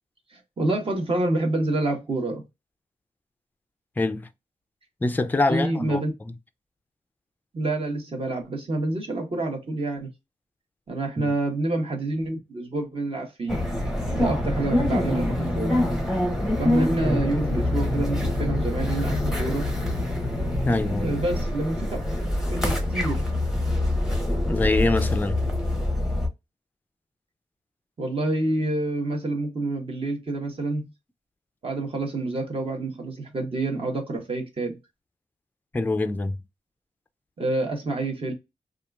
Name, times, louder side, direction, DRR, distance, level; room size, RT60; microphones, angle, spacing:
voice 1, 0.3-2.4 5.5-6.1 7.5-10.1 10.9-13.7 14.1-15.8 16.6-19.7 21.0-22.0 22.5-23.3 28.0-30.9 31.6-34.8 37.4-38.3, right 2 dB, 45° right, 1.1 m, -27 dB
voice 2, 4.0-4.3 5.0-6.0 11.2-11.3 20.6-21.1 24.5-25.4 35.7-36.4, left 2 dB, 15° left, 0.4 m, -24 dB
sound 1, 13.5-26.3, left 1 dB, 5° right, 0.8 m, -25 dB
2.8 x 2.4 x 2.3 m
cardioid pair, 70°, 13 cm